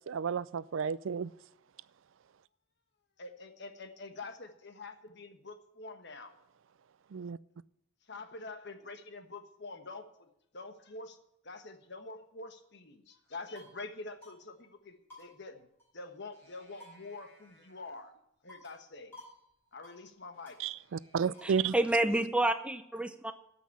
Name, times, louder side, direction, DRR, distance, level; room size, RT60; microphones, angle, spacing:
voice 1, 0.1-1.3 7.1-7.4 20.6-21.7, right 6 dB, 65° right, 0.4 m, -32 dB
voice 2, 3.2-6.3 8.1-10.1 10.5-11.2 11.4-15.7 15.9-18.1 18.4-19.1 19.7-20.6, left 3 dB, 55° left, 1.3 m, -46 dB
sound 1, 13.2-13.8 14.2-14.4 14.6-14.7 15.1-16.1 16.3-18.0 18.5-18.8 19.1-19.4 19.6-20.0 20.4-21.7, left 1 dB, 10° left, 5.0 m, -56 dB
voice 3, 21.4-23.3, right 1 dB, 5° right, 0.6 m, -29 dB
13.5 x 5.9 x 8.4 m
head